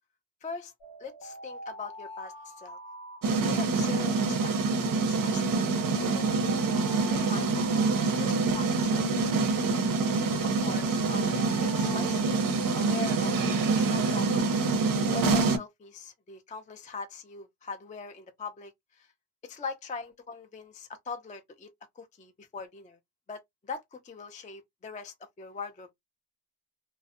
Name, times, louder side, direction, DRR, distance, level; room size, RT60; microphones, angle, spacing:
voice 1, 0.4-0.7 1.0-2.8 3.5-6.4 7.0-7.6 8.0-9.1 10.1-12.5 12.7-14.5 14.9-19.1 19.4-21.7 22.0-23.0 23.3-25.9, left 4 dB, 20° left, 0.3 m, -41 dB
sound 1, 0.8-4.0 5.1-8.9 10.0-13.2, right 1 dB, 75° left, 0.9 m, -46 dB
sound 2, 3.2-15.6, right 4 dB, 50° right, 0.5 m, -26 dB
2.5 x 2.0 x 2.4 m
wide cardioid pair, 115°, 44 cm